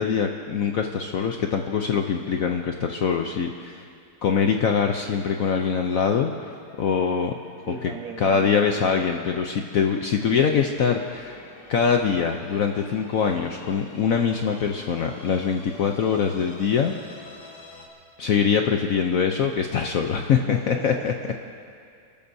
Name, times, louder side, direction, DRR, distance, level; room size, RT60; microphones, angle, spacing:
voice 1, 0.0-3.8 4.2-7.4 7.7-7.8 8.2-11.4 11.7-16.9 18.2-21.1, left 6 dB, 75° left, 4 dB, 0.8 m, -23 dB
sound 1, 6.6-17.9, left 2 dB, 50° left, 2.2 m, -48 dB
voice 2, 7.7-8.6 20.3-21.3, right 3 dB, 50° right, 1 dB, 1.6 m, -38 dB
30.0 x 14.0 x 2.7 m, 2.3 s
omnidirectional pair, 2.2 m